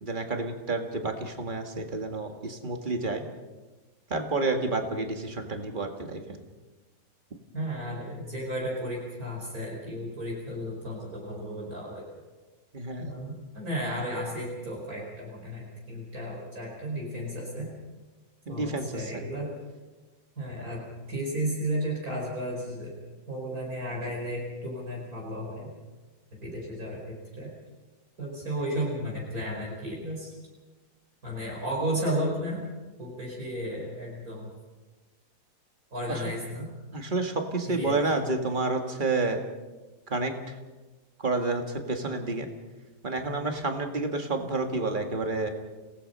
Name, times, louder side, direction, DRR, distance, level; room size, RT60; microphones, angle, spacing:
voice 1, 0.0-3.3 4.1-6.2 12.7-13.3 18.5-19.2 36.1-36.2 36.9-39.4 40.1-40.4 41.2-42.5 43.0-45.5, right 3 dB, 30° right, 4 dB, 2.0 m, -29 dB
voice 2, 7.5-12.0 13.1-17.7 18.5-19.5 20.4-22.9 23.3-25.7 26.4-27.5 28.2-30.3 31.2-32.6 33.0-34.5 35.9-36.7 37.7-38.0, equal, 60° right, -2 dB, 5.5 m, -33 dB
29.5 x 18.0 x 5.6 m, 1.2 s
omnidirectional pair, 1.7 m